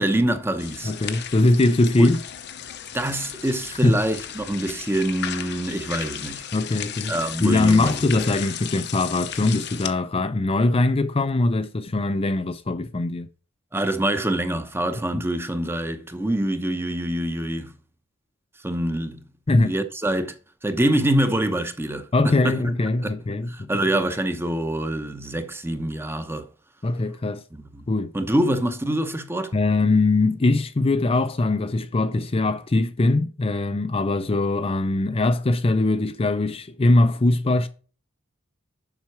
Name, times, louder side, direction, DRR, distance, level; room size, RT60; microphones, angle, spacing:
voice 1, 0.0-0.9 2.0-2.1 2.9-6.4 7.1-8.1 13.7-17.7 18.6-19.2 19.6-20.4 20.6-22.7 23.0-23.1 23.5-26.5 27.5-27.8 28.1-29.5, right 1 dB, 10° right, 0.9 m, -25 dB
sound 1, 0.6-9.9, left 9 dB, 55° left, 0.8 m, -35 dB
voice 2, 0.8-2.2 3.8-4.0 6.5-7.1 7.4-13.3 15.1-15.2 19.5-19.7 22.1-23.9 26.8-27.4 27.9-28.1 29.5-37.7, left 2 dB, 30° left, 0.5 m, -21 dB
7.4 x 5.8 x 4.7 m
head